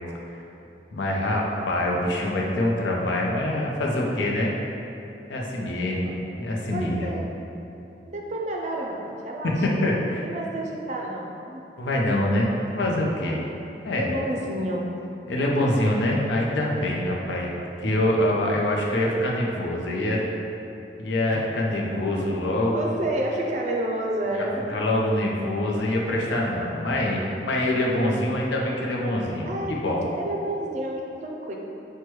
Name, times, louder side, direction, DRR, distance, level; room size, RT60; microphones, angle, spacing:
voice 1, 0.9-4.5 5.3-7.1 9.6-10.2 11.8-13.4 13.8-14.1 15.3-17.5 17.8-20.2 21.0-23.0 24.7-30.0, left 1 dB, 90° left, -2 dB, 0.6 m, -25 dB
voice 2, 6.7-7.3 8.1-9.5 10.2-11.6 13.2-13.4 13.9-14.9 21.3-21.4 22.7-24.7 29.5-29.7 30.2-31.5, right 1 dB, 40° right, -1 dB, 0.4 m, -30 dB
6.1 x 2.2 x 3.1 m, 2.9 s
head